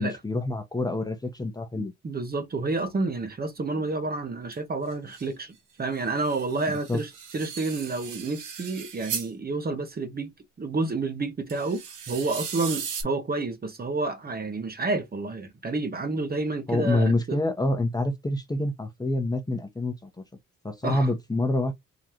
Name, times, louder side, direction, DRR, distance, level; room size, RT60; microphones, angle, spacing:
voice 1, 0.0-1.9 6.7-7.0 16.7-20.2 20.6-21.7, left 2 dB, 15° left, 1.0 m, -27 dB
voice 2, 1.7-10.3 10.6-17.4 20.8-21.1, right 3 dB, 30° right, 1.0 m, -30 dB
sound 1, 4.5-4.6 4.9-5.3 6.0-9.3 11.5-13.0, right 7 dB, 90° right, 1.7 m, -37 dB
3.9 x 3.1 x 2.9 m
cardioid pair, 90°, 30 cm